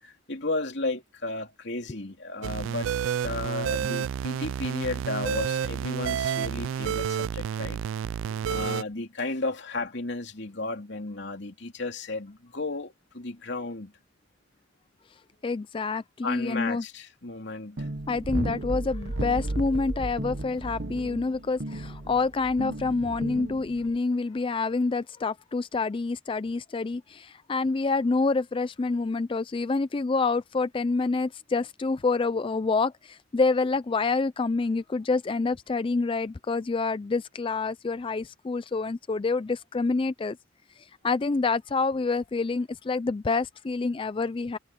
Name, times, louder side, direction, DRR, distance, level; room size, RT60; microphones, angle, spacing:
voice 1, 0.0-2.9 3.2-7.8 8.5-13.9 16.2-17.9, left 2 dB, 60° left, 3.2 m, -33 dB
sound 1, 2.4-8.8, right 8 dB, 80° right, 0.3 m, -30 dB
voice 2, 15.4-16.8 18.1-40.4 41.0-44.6, left 3 dB, 25° left, 0.4 m, -27 dB
sound 2, 17.8-24.0, right 1 dB, 55° right, 1.2 m, -34 dB
head